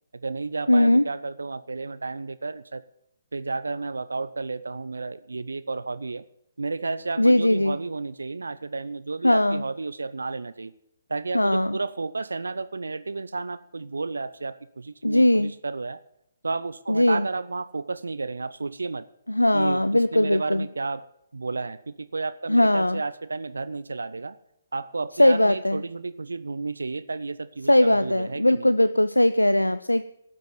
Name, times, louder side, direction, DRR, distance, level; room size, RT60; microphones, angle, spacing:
voice 1, 0.1-2.8 3.3-6.2 6.6-10.7 11.1-16.0 16.4-19.1 19.5-24.4 24.7-28.8, right 3 dB, 70° right, 15 dB, 0.6 m, -32 dB
voice 2, 0.7-1.0 7.2-7.8 9.2-9.6 11.3-11.8 15.0-15.5 16.9-17.2 19.3-20.6 22.5-23.0 25.2-25.8 27.7-30.0, left 1 dB, 90° left, 14 dB, 0.4 m, -20 dB
13.0 x 7.6 x 9.2 m, 0.77 s
figure-of-eight pair, 135°, 0 cm